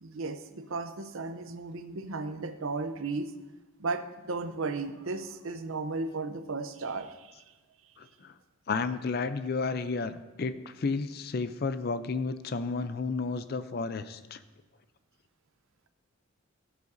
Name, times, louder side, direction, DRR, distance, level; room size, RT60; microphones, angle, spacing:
voice 1, 0.0-3.3 3.8-7.4, right 3 dB, 75° right, 9 dB, 0.7 m, -35 dB
voice 2, 8.0-8.3 8.7-14.4, left 4 dB, 45° left, 12 dB, 0.4 m, -32 dB
16.5 x 8.1 x 2.6 m, 1.1 s
head